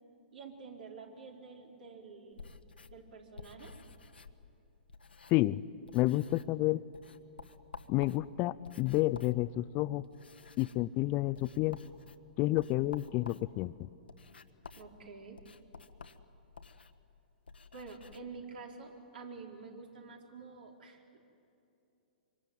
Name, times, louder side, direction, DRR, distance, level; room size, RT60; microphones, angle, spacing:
voice 1, 0.3-2.5 2.9-3.7 14.8-15.4 17.7-21.2, right 4 dB, 70° right, 2 dB, 4.5 m, -48 dB
sound 1, 2.3-5.6 5.9-6.6 6.9-18.2, left 4 dB, 90° left, 1.3 m, -52 dB
voice 2, 5.3-5.6 5.9-6.8 7.9-10.0 10.6-11.8 12.4-13.7, left 18 dB, 35° left, 17 dB, 0.5 m, -30 dB
25.0 x 24.5 x 9.4 m, 2.7 s
hypercardioid pair, 120°, 5 cm